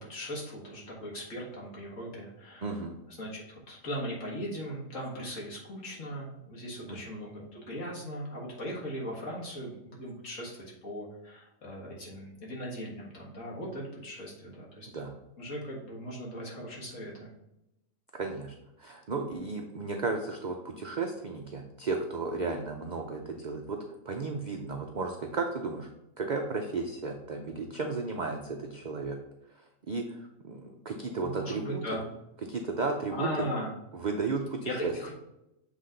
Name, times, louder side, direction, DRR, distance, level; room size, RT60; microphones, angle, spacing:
voice 1, 0.0-2.8 3.1-14.9 15.4-17.3 31.2-32.0 33.1-33.8 34.7-35.1, equal, 60° left, -4 dB, 2.1 m, -38 dB
voice 2, 2.6-2.9 6.9-7.0 14.9-15.1 18.1-23.8 24.1-25.9 26.2-29.2 29.9-30.0 30.4-31.8 32.5-33.5 34.0-34.9, right 3 dB, 70° right, 3 dB, 0.4 m, -34 dB
7.5 x 3.5 x 3.8 m, 0.88 s
omnidirectional pair, 1.5 m